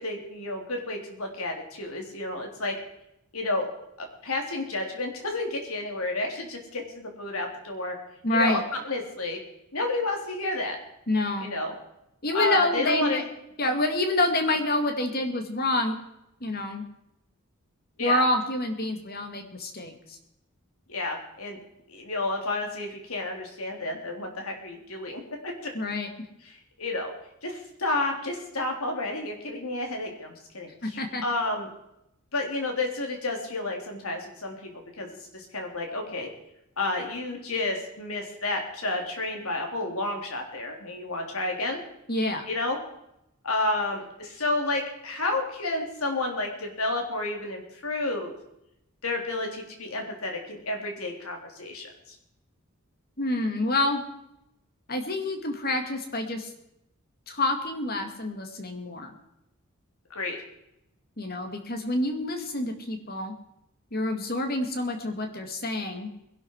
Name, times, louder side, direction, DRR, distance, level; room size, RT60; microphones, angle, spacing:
voice 1, 0.0-2.7 3.3-3.7 4.2-8.0 8.3-8.6 8.8-9.4 9.7-10.8 11.4-11.7 12.3-13.2 18.0-18.2 20.9-21.6 21.9-25.7 26.4-27.1 27.4-31.7 32.3-34.7 35.0-36.3 36.8-41.8 42.5-42.8 43.4-48.3 49.0-51.9 60.1-60.4, left 2 dB, 80° left, 2 dB, 3.6 m, -31 dB
voice 2, 8.2-8.6 11.1-11.5 12.2-13.2 13.6-16.0 16.4-16.8 18.0-20.2 25.7-26.1 30.8-31.2 42.1-42.5 53.2-54.0 54.9-56.5 57.3-59.1 61.2-63.3 63.9-66.1, left 2 dB, 45° left, 5 dB, 2.3 m, -27 dB
21.5 x 11.5 x 4.8 m, 0.83 s
head